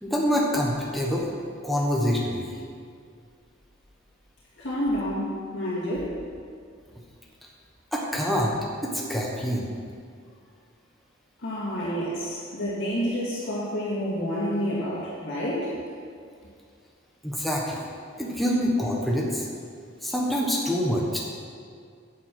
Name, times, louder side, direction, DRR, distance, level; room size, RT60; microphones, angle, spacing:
voice 1, 0.0-1.3 1.6-2.6 7.9-8.5 8.8-9.7 17.2-17.8 18.2-19.5 20.0-21.2, equal, ahead, -3 dB, 1.2 m, -26 dB
voice 2, 4.6-6.2 11.4-15.7, equal, 65° left, -7 dB, 2.2 m, -29 dB
9.7 x 7.8 x 6.2 m, 2.2 s
head